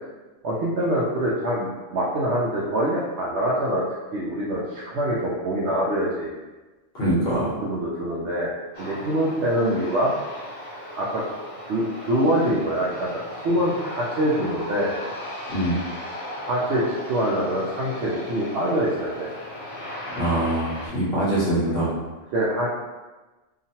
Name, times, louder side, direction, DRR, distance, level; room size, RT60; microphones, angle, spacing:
voice 1, 0.4-3.8 4.1-6.3 7.3-8.5 8.8-10.1 10.9-11.2 11.6-15.0 16.3-19.3 21.6-22.0 22.3-22.7, right 1 dB, 65° right, -6 dB, 0.8 m, -25 dB
voice 2, 6.9-7.5 15.5-15.8 20.1-21.9, right 1 dB, 60° left, -7 dB, 1.1 m, -23 dB
Aircraft, 8.7-20.9, left 1 dB, 40° left, 0.5 m, -37 dB
2.9 x 2.4 x 2.7 m, 1.2 s
omnidirectional pair, 1.3 m